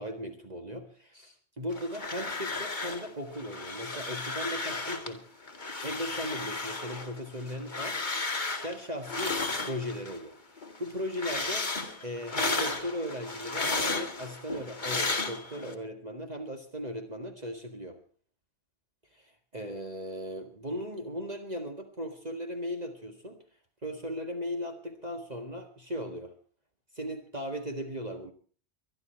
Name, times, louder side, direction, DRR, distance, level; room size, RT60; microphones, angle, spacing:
voice 1, 0.0-5.3 5.8-8.0 8.4-10.4 10.8-11.7 12.0-18.0 19.1-23.4 23.8-26.3 26.9-28.3, equal, 40° right, 5 dB, 1.9 m, -37 dB
sound 1, 1.7-3.1 3.3-5.1 5.5-10.2 10.6-15.7, left 3 dB, 45° left, 2.0 m, -34 dB
23.5 x 11.0 x 4.5 m, 0.40 s
omnidirectional pair, 1.1 m